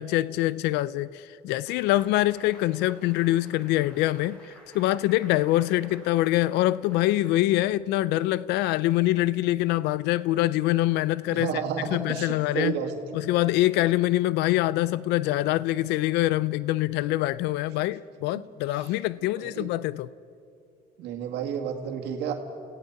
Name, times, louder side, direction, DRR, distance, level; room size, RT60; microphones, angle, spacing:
voice 1, 0.0-12.8 13.1-20.1, left 16 dB, 90° left, 0.4 m, -25 dB
sound 1, 1.7-8.1, right 1 dB, 5° left, 5.9 m, -53 dB
voice 2, 11.3-13.0 18.8-18.9 19.4-19.7 21.0-22.3, right 8 dB, 85° right, 2.0 m, -31 dB
29.5 x 16.5 x 5.9 m
cardioid pair, 110°, 17 cm